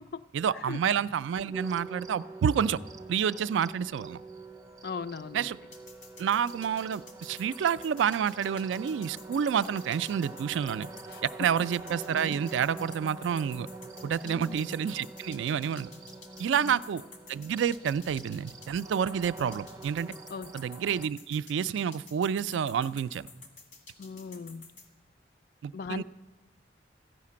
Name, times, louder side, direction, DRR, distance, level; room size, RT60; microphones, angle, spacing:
voice 1, 0.3-2.8 3.1-4.2 5.3-5.6 6.2-10.9 11.2-13.7 14.0-15.9 16.4-17.0 17.3-20.1 20.5-23.3 25.6-26.0, right 8 dB, 85° right, 16 dB, 0.3 m, -29 dB
sound 1, 1.5-21.1, right 3 dB, 20° right, 0.4 m, -46 dB
voice 2, 4.8-5.5 11.1-11.2 14.2-14.6 16.6-16.8 20.3-20.5 24.0-24.7 25.7-26.0, left 5 dB, 55° left, 15 dB, 0.4 m, -38 dB
sound 2, 5.7-24.9, left 4 dB, 90° left, 1.9 m, -51 dB
14.5 x 5.8 x 8.5 m, 1.3 s
head